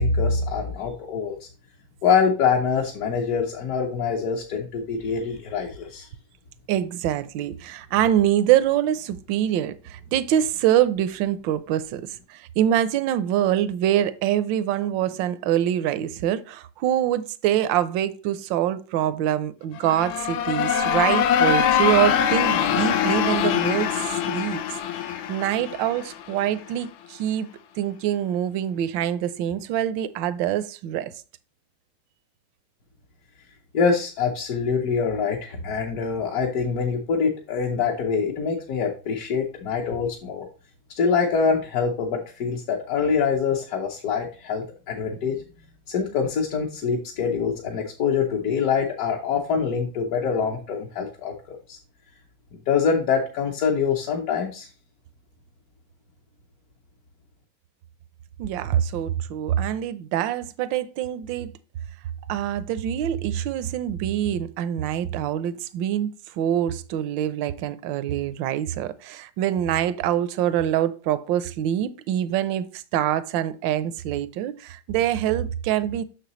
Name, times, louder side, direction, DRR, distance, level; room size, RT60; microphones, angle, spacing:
voice 1, 0.0-1.4 2.0-6.1 33.7-40.4 41.0-45.4 45.9-51.3 51.7-51.8 52.7-54.7, left 5 dB, 55° left, 1.2 m, -24 dB
voice 2, 6.7-24.6 24.9-27.5 27.8-31.1 58.4-61.5 62.3-76.0, right 11 dB, 75° right, 1.3 m, -25 dB
sound 1, 19.8-26.5, left 9 dB, 85° left, 1.5 m, -23 dB
6.7 x 6.5 x 3.0 m
omnidirectional pair, 2.1 m